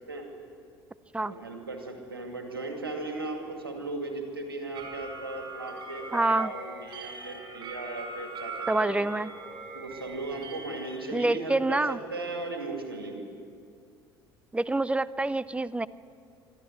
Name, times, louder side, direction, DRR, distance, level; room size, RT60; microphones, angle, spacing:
voice 1, 1.3-8.9 9.7-13.3, right 2 dB, 85° right, 3 dB, 2.4 m, -37 dB
sound 1, 4.7-11.0, right 3 dB, 40° right, 5.2 m, -41 dB
voice 2, 6.1-6.5 8.7-9.3 11.1-12.0 14.5-15.9, right 2 dB, 10° right, 19 dB, 0.5 m, -26 dB
24.0 x 13.5 x 9.6 m, 2.4 s
figure-of-eight pair, 60°, 12 cm